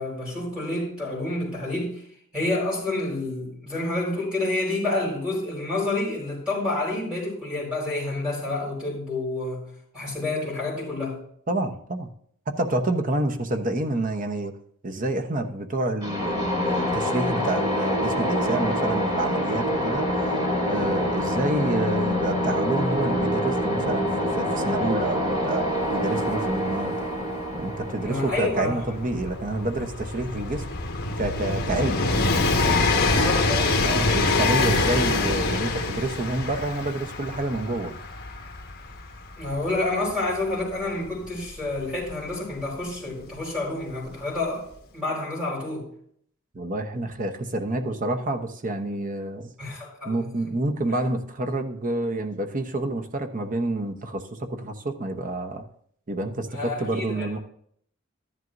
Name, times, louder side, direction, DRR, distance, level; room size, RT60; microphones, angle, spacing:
voice 1, 0.0-2.0 2.3-9.7 9.9-11.2 28.0-28.8 33.1-33.8 39.4-44.7 44.9-45.9 49.6-50.3 56.5-57.4, left 2 dB, 5° right, 4.5 m, -29 dB
voice 2, 11.5-12.1 12.5-14.5 14.8-20.1 20.7-25.7 25.9-26.9 27.5-30.6 31.2-32.0 33.8-37.9 46.5-49.5 50.0-55.6 56.1-57.4, right 2 dB, 40° right, 0.9 m, -28 dB
sound 1, 16.0-29.7, equal, 20° right, 2.9 m, -26 dB
Train, 25.9-26.0 26.2-42.8 43.8-43.9, left 3 dB, 50° left, 1.5 m, -26 dB
13.0 x 11.0 x 2.6 m
head